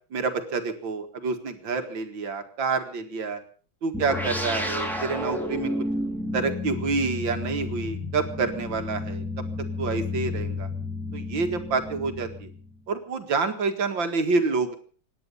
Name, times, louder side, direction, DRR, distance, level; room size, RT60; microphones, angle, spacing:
voice 1, 0.1-3.4 3.8-5.7 6.3-9.2 9.8-10.7 11.1-12.5 12.9-14.8, right 4 dB, 75° right, 7 dB, 2.6 m, -28 dB
sound 1, 3.9-12.8, left 2 dB, ahead, 2.7 m, -31 dB
25.5 x 10.5 x 5.5 m, 0.41 s
omnidirectional pair, 2.1 m